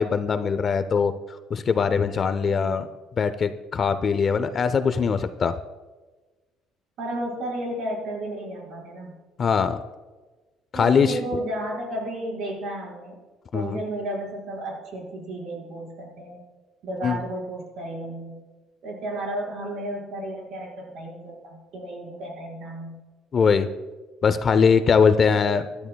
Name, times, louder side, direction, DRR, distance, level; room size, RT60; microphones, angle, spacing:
voice 1, 0.0-2.9 3.2-5.5 9.4-9.8 10.7-11.2 13.5-13.8 17.0-17.2 23.3-23.7 24.2-25.6, left 6 dB, 30° left, 11 dB, 0.4 m, -21 dB
voice 2, 2.4-2.9 7.0-9.2 10.7-13.2 13.5-16.4 16.8-18.4 18.8-23.0 25.3-25.4, right 1 dB, 55° right, -1 dB, 4.6 m, -33 dB
24.0 x 11.5 x 2.3 m, 1.3 s
cardioid pair, 180°, 0 cm